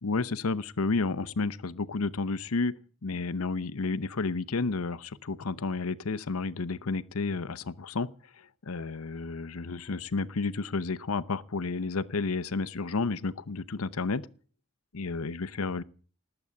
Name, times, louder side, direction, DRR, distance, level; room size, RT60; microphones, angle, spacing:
voice 1, 0.0-2.7 3.0-8.1 8.6-14.3 14.9-15.8, left 3 dB, 85° left, 0.8 m, -31 dB
19.5 x 7.9 x 8.6 m
head